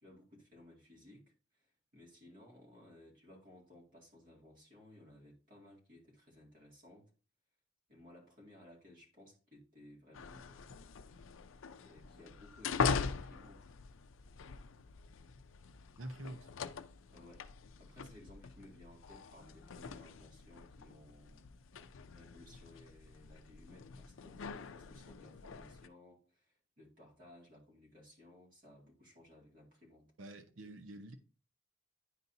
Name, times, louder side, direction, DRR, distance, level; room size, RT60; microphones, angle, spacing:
voice 1, 0.0-7.1 7.9-10.8 11.8-13.7 17.1-17.5 17.8-21.5 22.1-30.1, left 1 dB, 45° right, 2.2 m, -59 dB
sound 1, 10.1-25.9, left 5 dB, 80° left, 0.5 m, -42 dB
voice 2, 16.0-16.5 30.2-31.2, right 1 dB, 80° right, 0.8 m, -47 dB
10.5 x 4.0 x 2.7 m
head